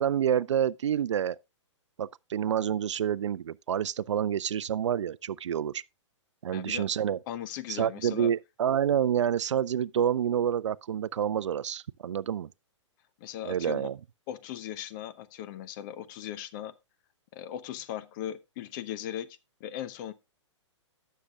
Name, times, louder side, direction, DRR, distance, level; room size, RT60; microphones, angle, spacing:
voice 1, 0.0-1.4 2.0-5.8 6.4-7.2 7.7-12.5 13.4-14.0, right 9 dB, 70° right, 0.4 m, -28 dB
voice 2, 6.5-6.9 7.3-8.3 13.2-13.9 14.3-16.7 17.3-20.1, left 11 dB, 40° left, 0.8 m, -38 dB
17.5 x 6.6 x 2.4 m
hypercardioid pair, 120°, 16 cm